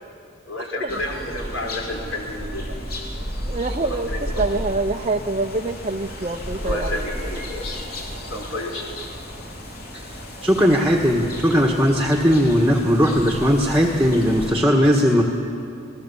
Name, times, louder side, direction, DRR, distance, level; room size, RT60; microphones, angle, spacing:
voice 1, 0.5-2.8 3.8-4.5 6.5-9.0, left 1 dB, 70° left, 0 dB, 4.4 m, -31 dB
sound 1, 0.9-14.5, equal, 45° left, 3.5 m, -33 dB
voice 2, 3.1-6.9, right 3 dB, 30° right, 2 dB, 0.7 m, -26 dB
voice 3, 10.4-15.2, equal, 5° right, 0 dB, 1.4 m, -18 dB
28.0 x 20.0 x 7.1 m, 2.5 s
head